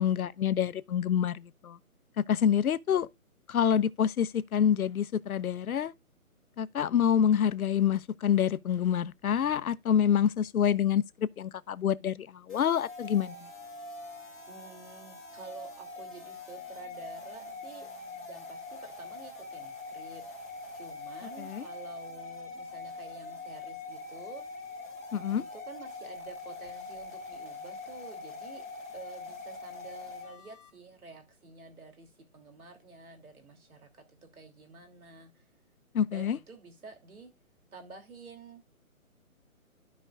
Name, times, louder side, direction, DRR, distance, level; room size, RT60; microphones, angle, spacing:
voice 1, 0.0-1.8 2.2-3.1 3.5-5.9 6.6-13.5 21.4-21.7 25.1-25.4 35.9-36.4, left 8 dB, 80° left, 0.7 m, -27 dB
sound 1, 12.5-30.7, left 3 dB, 5° right, 3.8 m, -43 dB
voice 2, 14.4-17.9 18.3-24.4 25.4-28.7 28.9-35.4 36.1-37.3 37.7-38.7, right 4 dB, 80° right, 3.2 m, -49 dB
12.5 x 5.1 x 2.5 m
hypercardioid pair, 180°, 43 cm